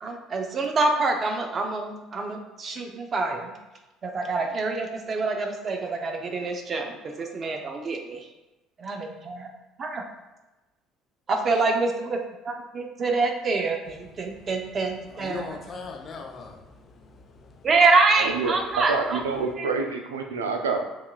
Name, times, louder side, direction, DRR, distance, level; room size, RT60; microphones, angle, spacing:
voice 1, 0.0-3.5 4.0-8.3 8.8-9.5 9.8-10.1 11.3-12.2 12.4-15.6 17.6-19.2 19.6-19.7, right 3 dB, 40° right, 0.6 m, -26 dB
voice 2, 14.2-14.5 15.1-17.7, left 4 dB, 40° left, 0.7 m, -40 dB
voice 3, 18.2-18.5 18.9-20.8, right 4 dB, 85° right, 0.3 m, -27 dB
5.5 x 2.4 x 2.3 m
hypercardioid pair, 60°, 0 cm